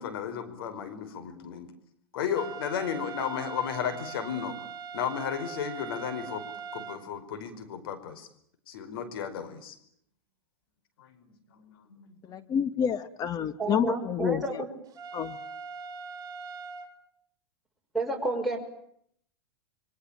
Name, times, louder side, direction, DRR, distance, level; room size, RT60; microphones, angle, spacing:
voice 1, 0.0-1.7 2.1-4.6 4.9-6.4 6.7-8.3 8.7-9.8 11.0-12.5, left 8 dB, 65° left, 5.0 m, -34 dB
sound 1, 2.4-7.0 15.0-16.9, right 6 dB, 30° right, 4.4 m, -41 dB
voice 2, 12.3-14.6 15.1-15.4, left 7 dB, 30° left, 1.7 m, -28 dB
voice 3, 13.6-14.7 17.9-18.6, right 2 dB, ahead, 6.4 m, -30 dB
27.0 x 24.0 x 8.9 m
hypercardioid pair, 105°, 13 cm